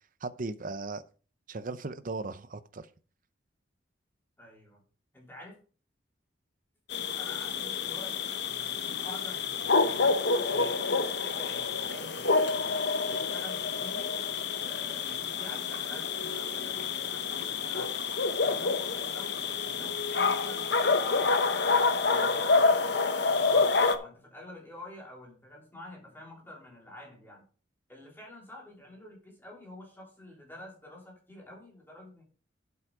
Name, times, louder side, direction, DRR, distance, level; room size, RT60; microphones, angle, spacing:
voice 1, 0.2-1.0 1.5-2.9, right 3 dB, 45° right, 13 dB, 0.7 m, -37 dB
voice 2, 4.4-4.8 5.1-5.6 7.1-10.0 10.5-14.1 14.6-18.0 18.4-22.9 23.4-27.4 27.9-32.2, left 1 dB, 10° left, -2 dB, 3.4 m, -48 dB
sound 1, 6.9-24.0, left 4 dB, 60° left, 0.9 m, -28 dB
8.2 x 7.5 x 4.8 m, 0.39 s
head